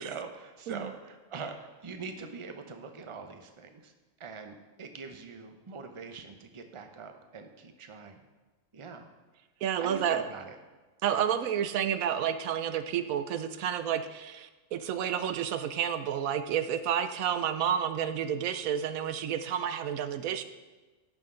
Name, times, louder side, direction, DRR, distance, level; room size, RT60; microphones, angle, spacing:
voice 1, 0.0-1.6 1.8-3.9 4.2-8.2 8.7-9.1 9.8-10.5, right 4 dB, 30° right, 6 dB, 0.7 m, -42 dB
voice 2, 9.6-10.2 11.0-20.4, right 9 dB, 85° right, 10 dB, 1.1 m, -30 dB
17.0 x 6.4 x 3.8 m, 1.2 s
omnidirectional pair, 1.4 m